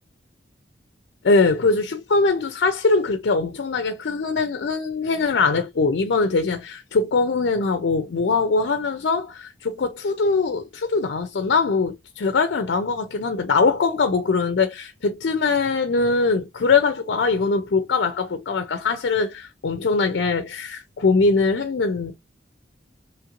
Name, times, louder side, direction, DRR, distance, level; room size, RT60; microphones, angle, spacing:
voice 1, 1.2-22.1, left 4 dB, 65° left, 0.4 m, -22 dB
3.1 x 2.4 x 2.9 m
head